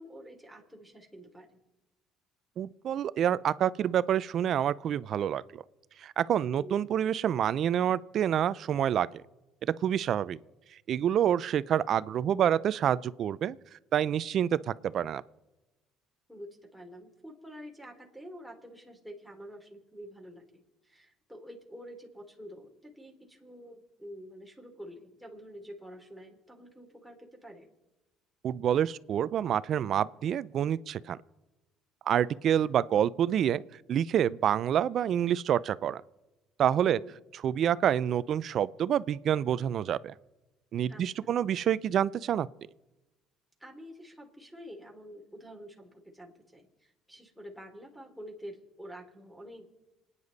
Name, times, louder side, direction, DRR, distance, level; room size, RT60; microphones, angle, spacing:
voice 1, 0.0-1.6 6.5-6.8 16.3-27.7 36.8-37.1 40.9-41.3 43.6-49.7, equal, ahead, 3.4 m, -48 dB
voice 2, 2.6-5.6 6.0-9.2 9.8-10.4 10.9-13.6 13.9-15.2 28.4-31.2 32.1-33.6 33.9-36.0 36.6-37.0 37.4-40.1 40.7-42.5, right 9 dB, 55° right, 0.5 m, -27 dB
27.0 x 9.8 x 4.1 m
supercardioid pair, 80°, 0 cm